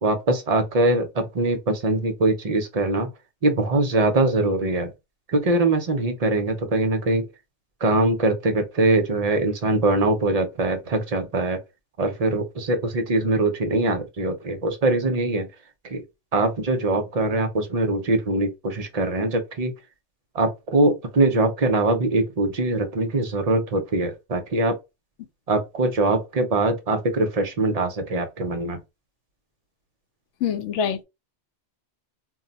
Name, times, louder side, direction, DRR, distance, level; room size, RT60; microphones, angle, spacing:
voice 1, 0.0-3.1 3.4-4.9 5.3-7.3 7.8-11.6 12.0-15.5 15.8-16.0 16.3-19.7 20.3-24.8 25.5-28.8, right 2 dB, 50° right, 0.5 m, -22 dB
voice 2, 30.4-31.0, left 7 dB, 85° left, 0.9 m, -25 dB
2.3 x 2.1 x 3.8 m
omnidirectional pair, 1.2 m